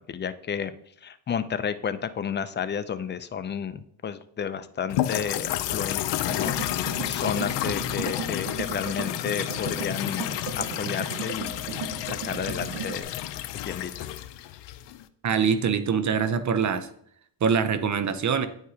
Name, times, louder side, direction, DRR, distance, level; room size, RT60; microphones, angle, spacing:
voice 1, 0.1-0.7 1.0-13.1 13.6-14.1, left 7 dB, 25° left, 12 dB, 0.4 m, -32 dB
sound 1, 4.9-15.1, left 13 dB, 80° left, 0.5 m, -31 dB
sound 2, 6.3-13.0, right 7 dB, 85° right, 0.8 m, -37 dB
voice 2, 15.2-16.9 17.4-18.5, right 6 dB, 45° right, 11 dB, 0.6 m, -24 dB
9.2 x 4.8 x 2.8 m, 0.66 s
cardioid pair, 100°, 43 cm